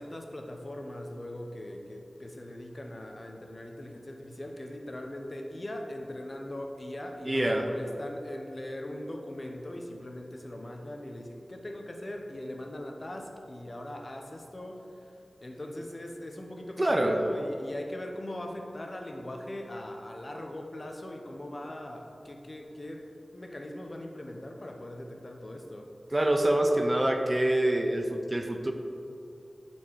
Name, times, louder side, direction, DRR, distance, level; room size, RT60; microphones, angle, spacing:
voice 1, 0.0-14.9 15.4-23.1 23.3-25.9, left 1 dB, 40° left, 2 dB, 0.9 m, -40 dB
voice 2, 7.3-7.7 16.8-17.2 26.1-28.7, right 1 dB, 25° right, 4 dB, 0.6 m, -25 dB
10.5 x 4.5 x 4.7 m, 2.6 s
wide cardioid pair, 65°, 0 cm